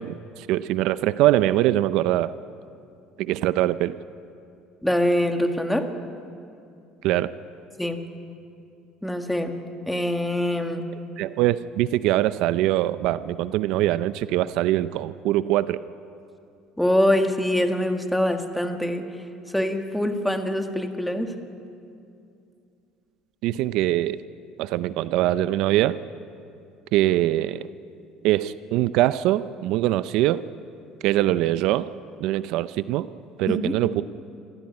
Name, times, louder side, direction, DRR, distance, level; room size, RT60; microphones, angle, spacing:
voice 1, 0.0-2.3 3.2-4.0 7.0-7.3 11.2-15.8 23.4-24.2 24.6-26.0 26.9-27.7 28.2-30.4 31.0-31.9 32.2-33.1 33.4-34.0, right 14 dB, 70° right, 15 dB, 0.5 m, -23 dB
voice 2, 4.8-5.9 7.8-8.0 9.0-9.6 9.8-10.9 16.8-19.1 19.5-21.3 33.5-33.7, left 1 dB, 5° left, 5 dB, 1.8 m, -24 dB
26.0 x 15.0 x 9.7 m, 2.5 s
cardioid pair, 120°, 0 cm